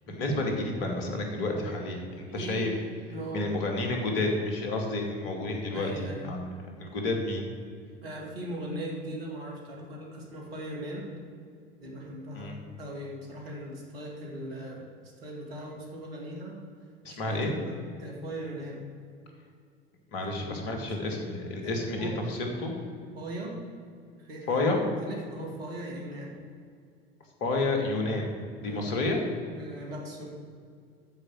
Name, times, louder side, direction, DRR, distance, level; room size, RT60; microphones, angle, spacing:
voice 1, 0.1-2.7 3.3-6.4 6.8-7.5 12.3-12.6 17.0-17.5 20.1-22.7 24.5-24.8 27.4-28.3 28.6-29.2, left 2 dB, 55° left, 2 dB, 2.6 m, -30 dB
voice 2, 2.3-2.7 3.1-3.5 5.7-6.3 8.0-11.1 11.8-16.6 17.1-18.8 20.2-21.2 21.6-21.7 22.0-22.1 23.1-23.6 24.2-24.7 25.0-26.4 28.6-28.9 29.6-30.3, right 1 dB, 70° right, -1 dB, 2.8 m, -39 dB
13.0 x 5.3 x 8.0 m, 2.2 s
figure-of-eight pair, 75°, 30 cm